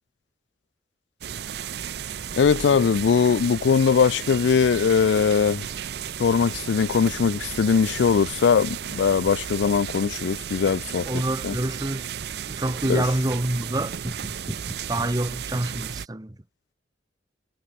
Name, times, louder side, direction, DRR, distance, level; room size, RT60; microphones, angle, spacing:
sound 1, 1.2-16.1, right 8 dB, 60° right, 0.5 m, -34 dB
Wind instrument woodwind instrument, 1.8-10.0, right 4 dB, 90° right, 6.0 m, -55 dB
voice 1, 2.4-5.7 6.2-11.1 11.4-11.6 12.9-13.1, left 6 dB, 75° left, 0.4 m, -21 dB
Sliding door, 2.8-8.6, left 1 dB, 40° left, 7.2 m, -56 dB
voice 2, 11.1-12.1 12.5-16.3, right 1 dB, 20° right, 1.1 m, -27 dB
head